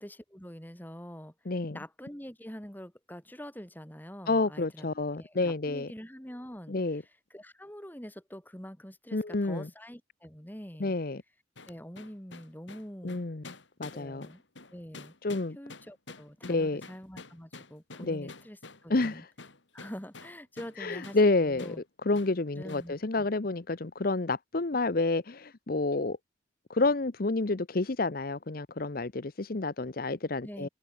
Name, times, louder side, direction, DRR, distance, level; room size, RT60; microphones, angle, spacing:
voice 1, 0.0-1.3 1.7-4.9 5.1-11.0 11.7-13.2 13.9-14.4 14.7-15.1 15.5-19.2 19.7-21.8 22.5-23.3 30.4-30.7, equal, 10° left, 2.8 m, -45 dB
voice 2, 1.5-1.8 4.3-5.9 6.7-7.0 9.1-9.7 10.8-11.2 13.0-13.4 13.8-14.3 15.2-15.6 16.4-16.8 18.0-18.3 18.9-19.3 20.8-21.8 22.0-26.2 26.7-30.7, left 3 dB, 50° left, 0.8 m, -29 dB
sound 1, 11.6-20.8 21.0-21.2 21.6-21.8 22.1-22.3 22.7-22.9, left 3 dB, 75° left, 3.4 m, -48 dB
open air
head